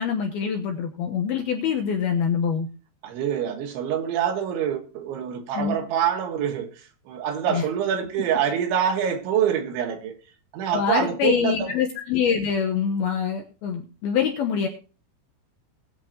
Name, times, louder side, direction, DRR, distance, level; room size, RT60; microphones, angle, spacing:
voice 1, 0.0-2.7 5.5-5.8 7.5-7.6 10.7-14.7, left 7 dB, 75° left, 2.4 m, -25 dB
voice 2, 3.0-6.7 7.1-10.2 10.5-11.7, right 9 dB, 75° right, 3.8 m, -25 dB
21.0 x 8.1 x 2.9 m
omnidirectional pair, 5.6 m